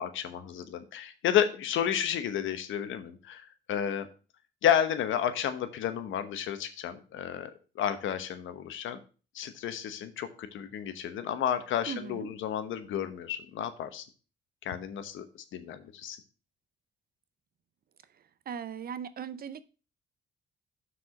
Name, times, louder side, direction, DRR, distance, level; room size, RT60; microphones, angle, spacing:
voice 1, 0.0-4.1 4.6-7.5 7.7-9.0 9.3-14.0 14.6-15.2 15.5-16.2, left 9 dB, 80° left, 1.1 m, -31 dB
voice 2, 11.9-12.3 18.5-19.6, right 7 dB, 50° right, 0.6 m, -38 dB
6.1 x 4.8 x 5.8 m
cardioid pair, 90°, 20 cm